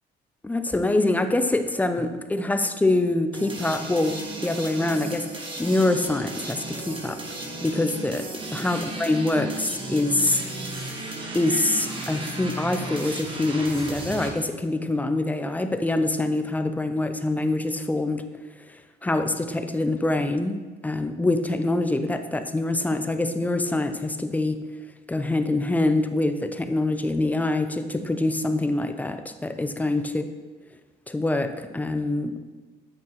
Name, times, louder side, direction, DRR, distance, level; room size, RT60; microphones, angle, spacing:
voice 1, 0.4-10.4 11.3-18.2 19.0-24.6 25.1-30.2 31.1-32.4, left 2 dB, 10° left, 8 dB, 0.5 m, -25 dB
sound 1, 3.3-14.3, right 2 dB, 30° right, 1.2 m, -34 dB
8.9 x 5.8 x 3.0 m, 1.3 s
cardioid pair, 110°, 17 cm